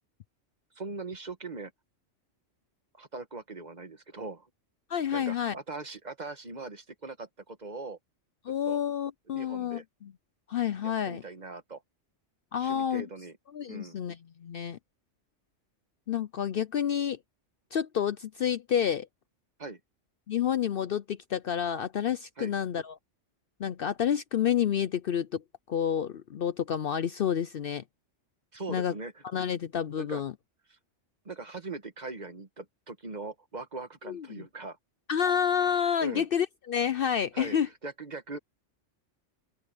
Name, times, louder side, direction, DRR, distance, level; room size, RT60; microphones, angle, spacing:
voice 1, 0.8-1.7 3.0-4.5 5.1-8.0 8.7-8.8 9.3-9.8 10.8-11.8 12.6-13.4 13.7-14.0 19.6-19.8 22.4-22.5 28.5-29.2 30.0-30.2 30.7-30.8 31.2-34.8 36.0-36.3 37.3-37.6 37.8-38.4, right 3 dB, 40° right, 1.4 m, -40 dB
voice 2, 4.9-5.5 8.4-10.1 10.5-11.2 12.5-13.1 13.5-14.8 16.1-17.2 17.7-19.1 20.3-23.0 23.6-25.4 25.7-27.8 28.7-28.9 29.3-30.3 34.1-34.4 35.1-37.7, left 8 dB, 60° left, 0.7 m, -29 dB
open air
omnidirectional pair, 1.2 m